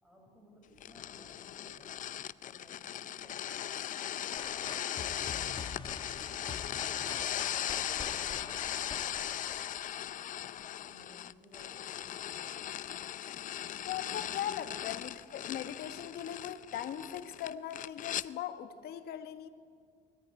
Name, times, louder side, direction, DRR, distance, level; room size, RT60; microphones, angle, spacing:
voice 1, 0.0-2.1 2.4-5.1 5.4-9.3 9.8-12.7, equal, 5° right, -1 dB, 6.4 m, -60 dB
sound 1, 0.8-18.3, left 11 dB, 50° left, 0.6 m, -38 dB
sound 2, 4.4-10.3, left 4 dB, 30° left, 1.9 m, -45 dB
voice 2, 13.8-19.5, left 10 dB, 70° left, 8 dB, 1.5 m, -39 dB
21.0 x 14.0 x 9.8 m, 2.1 s
cardioid pair, 110°, 17 cm